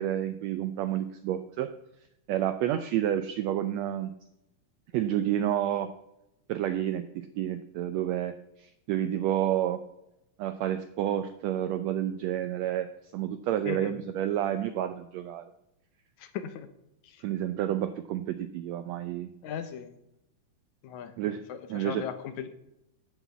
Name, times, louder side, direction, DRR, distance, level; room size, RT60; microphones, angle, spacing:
voice 1, 0.0-1.7 2.3-4.1 4.9-5.9 6.5-9.8 10.4-15.4 17.2-19.3 21.2-21.4 21.7-22.1, right 11 dB, 80° right, 11 dB, 1.5 m, -30 dB
voice 2, 16.2-16.7 17.0-17.2 19.4-19.9 20.8-21.1 21.5-22.6, left 9 dB, 70° left, 10 dB, 2.1 m, -38 dB
11.0 x 6.0 x 8.2 m, 0.87 s
omnidirectional pair, 3.7 m